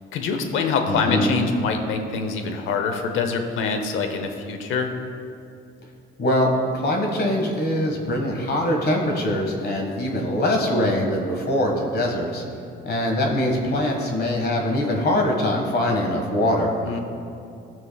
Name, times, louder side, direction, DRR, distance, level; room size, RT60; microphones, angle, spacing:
voice 1, 0.1-4.9 16.8-17.0, left 5 dB, 90° left, 5 dB, 0.8 m, -25 dB
voice 2, 0.9-1.3 6.2-12.4 12.8-16.7, left 1 dB, 55° left, 1 dB, 1.6 m, -23 dB
16.5 x 6.1 x 2.3 m, 2.6 s
cardioid pair, 90°, 20 cm